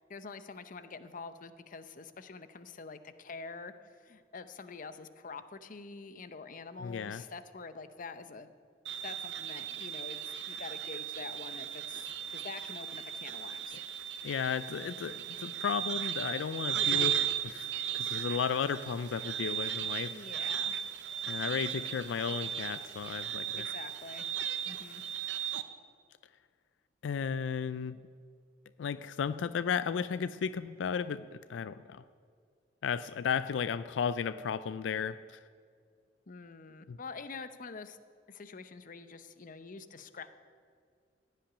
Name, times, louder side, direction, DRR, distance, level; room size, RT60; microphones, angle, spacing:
voice 1, 0.1-8.5 9.0-13.8 20.1-20.8 23.6-24.3 24.7-25.0 36.3-38.0 38.3-40.3, left 4 dB, 45° left, 11 dB, 0.7 m, -46 dB
voice 2, 6.8-7.2 14.2-17.7 17.9-20.1 21.3-23.6 27.0-28.0 28.8-32.0 32.8-35.2 36.9-37.0, left 6 dB, 90° left, 14 dB, 0.4 m, -34 dB
sound 1, 8.8-25.6, right 10 dB, 70° right, 0.7 m, -36 dB
15.5 x 5.8 x 10.0 m, 2.1 s
head